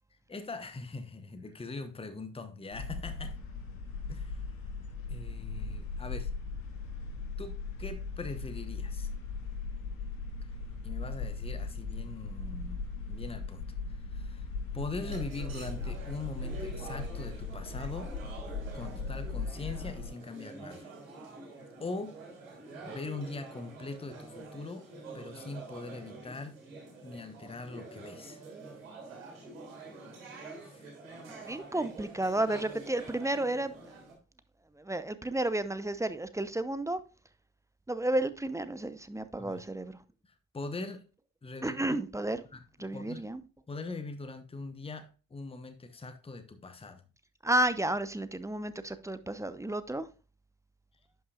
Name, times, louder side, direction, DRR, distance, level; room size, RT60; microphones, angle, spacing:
voice 1, 0.3-3.4 4.1-4.4 5.1-6.3 7.4-9.1 10.8-14.5 14.7-18.1 18.7-20.9 21.8-22.2 22.8-24.9 25.1-26.5 27.0-28.4 30.6-30.9 31.4-31.5 39.4-39.6 40.2-41.1 41.4-42.0 42.5-43.3 43.7-47.0, left 3 dB, 15° left, 1.1 m, -42 dB
sound 1, 2.7-20.1, left 4 dB, 60° left, 1.9 m, -38 dB
sound 2, 14.9-34.1, right 3 dB, 80° right, 2.8 m, -47 dB
voice 2, 31.4-34.0 34.7-37.0 37.9-40.0 41.6-42.4 42.8-43.4 47.4-50.1, right 1 dB, 10° right, 0.7 m, -32 dB
11.0 x 5.7 x 2.4 m
figure-of-eight pair, 50°, 40 cm